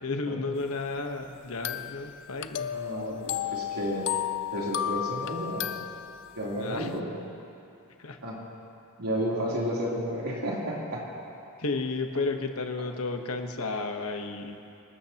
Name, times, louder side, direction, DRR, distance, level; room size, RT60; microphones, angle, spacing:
voice 1, 0.0-2.7 6.6-6.9 8.0-8.2 11.6-14.6, left 3 dB, 75° left, 5 dB, 1.1 m, -32 dB
sound 1, 1.6-6.6, left 11 dB, 55° left, 0.4 m, -33 dB
voice 2, 2.7-4.1 4.5-5.8 6.4-7.1 8.2-8.4 9.0-11.0, equal, 90° right, -5 dB, 3.3 m, -32 dB
25.5 x 13.0 x 2.9 m, 2.6 s
head